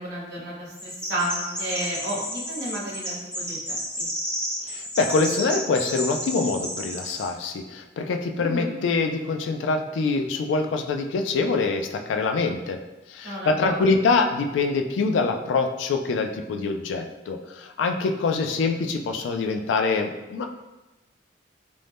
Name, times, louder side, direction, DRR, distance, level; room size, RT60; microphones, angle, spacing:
voice 1, 0.0-4.1 8.4-8.7 13.2-13.8, right 1 dB, 65° right, -5 dB, 0.9 m, -32 dB
Chirp tweet, 0.8-7.3, equal, 5° left, 0.6 m, -32 dB
voice 2, 4.7-12.8 13.1-20.4, left 4 dB, 90° left, 6 dB, 0.3 m, -25 dB
2.6 x 2.1 x 3.3 m, 1.1 s
head